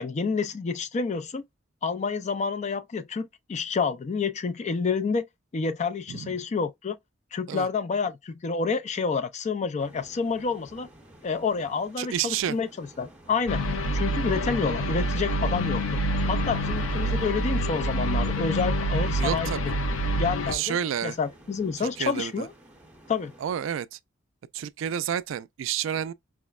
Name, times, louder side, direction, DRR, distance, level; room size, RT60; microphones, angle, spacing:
voice 1, 0.0-1.4 1.8-5.3 5.5-7.0 7.3-10.9 11.2-13.6 13.9-19.7 20.2-20.8 21.0-22.5 23.1-23.3, left 5 dB, 35° left, 0.4 m, -29 dB
sound 1, 9.8-23.5, right 1 dB, 10° right, 0.8 m, -48 dB
voice 2, 12.0-12.6 19.2-19.6 20.5-21.2 21.8-22.5 23.4-24.0 24.5-26.1, right 9 dB, 70° right, 0.3 m, -30 dB
sound 2, 13.5-20.5, equal, 90° left, 0.5 m, -27 dB
4.7 x 2.0 x 2.3 m
head